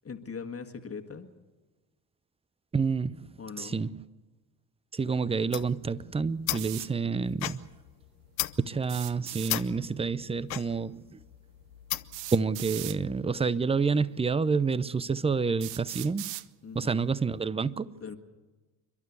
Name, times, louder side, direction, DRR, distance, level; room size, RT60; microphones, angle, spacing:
voice 1, 0.0-1.3 3.4-3.8 16.6-17.1 18.0-18.2, left 5 dB, 30° left, 1.7 m, -40 dB
voice 2, 2.7-3.3 3.6-4.0 4.9-7.7 8.6-11.2 12.3-16.3 16.7-17.9, right 5 dB, 10° right, 0.6 m, -28 dB
sound 1, 5.3-12.3, left 17 dB, 80° left, 0.9 m, -37 dB
sound 2, 6.6-6.9 8.8-9.5 11.0-11.1 12.1-13.0 14.0-14.1 14.8-14.9 15.6-16.5, right 17 dB, 65° right, 0.8 m, -39 dB
29.0 x 12.5 x 8.2 m
hypercardioid pair, 60°, 50 cm